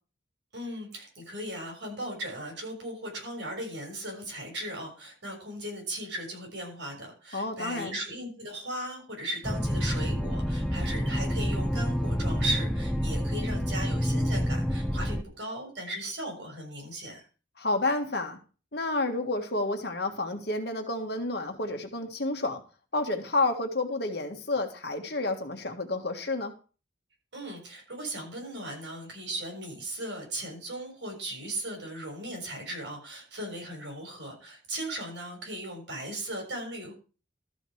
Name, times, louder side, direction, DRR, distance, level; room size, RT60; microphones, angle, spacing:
voice 1, 0.5-17.2 27.3-36.9, right 1 dB, 60° right, 1 dB, 6.7 m, -37 dB
voice 2, 7.3-8.0 17.6-18.4 18.7-22.6 22.9-26.5, left 2 dB, 55° left, 5 dB, 1.6 m, -30 dB
sound 1, 9.4-15.2, equal, ahead, 0.8 m, -28 dB
13.5 x 5.3 x 6.3 m, 0.36 s
head